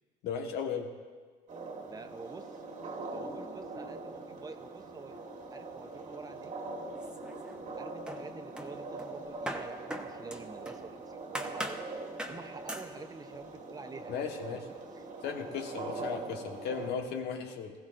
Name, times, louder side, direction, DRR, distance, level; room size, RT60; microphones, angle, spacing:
voice 1, 0.2-0.9 14.1-14.6 15.2-17.7, left 6 dB, 80° left, 3 dB, 1.5 m, -36 dB
sound 1, 1.5-16.9, right 3 dB, 50° right, 1.7 m, -42 dB
voice 2, 1.9-2.5 3.1-5.1 5.5-6.5 7.7-11.8 12.2-14.1 14.5-14.6 14.9-15.0 17.4-17.5, right 4 dB, 20° right, 8 dB, 0.7 m, -47 dB
sound 2, 7.0-7.7 8.1-10.9 11.4-11.9 12.2-12.4 12.7-12.9, right 1 dB, 5° right, 1.0 m, -40 dB
19.5 x 15.5 x 2.6 m, 1.5 s
cardioid pair, 110°, 17 cm